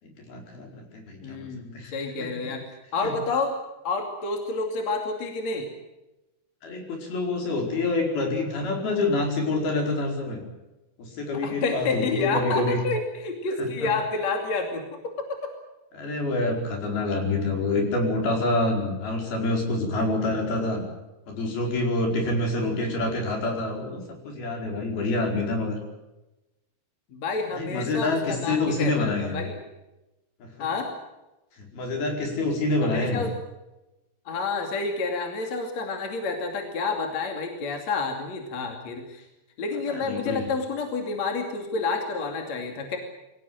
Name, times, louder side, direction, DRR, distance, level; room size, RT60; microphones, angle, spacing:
voice 1, 0.0-2.5 3.0-3.1 6.6-10.4 11.0-12.8 13.6-13.9 15.9-20.8 21.3-25.8 27.5-29.4 30.4-30.7 31.6-33.2 39.9-40.4, left 2 dB, 65° left, 2 dB, 6.7 m, -27 dB
voice 2, 1.2-3.6 3.8-5.7 11.3-15.5 27.1-29.6 30.6-30.9 32.8-33.3 34.3-39.2 39.6-43.0, left 3 dB, 45° left, 4 dB, 3.5 m, -29 dB
24.5 x 17.5 x 9.3 m, 1.0 s
omnidirectional pair, 4.7 m